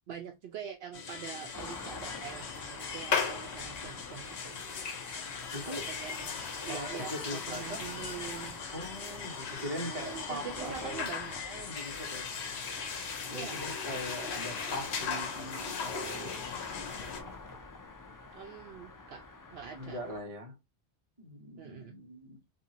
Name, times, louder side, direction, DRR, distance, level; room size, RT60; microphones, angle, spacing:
voice 1, 0.1-4.6 5.6-6.3 6.6-8.6 9.8-11.6 13.3-13.7 18.3-19.3 19.5-20.0 21.6-22.0, right 8 dB, 70° right, 0.8 m, -44 dB
sound 1, 0.9-17.2, left 5 dB, 75° left, 1.0 m, -38 dB
sound 2, 1.5-20.2, left 3 dB, 35° left, 0.3 m, -47 dB
voice 2, 5.5-5.8 6.7-7.8 8.7-11.1 11.4-12.3 13.3-16.4 16.9-17.5 19.7-20.6 21.2-22.4, equal, 35° right, 1.2 m, -41 dB
2.9 x 2.7 x 2.7 m
omnidirectional pair, 1.1 m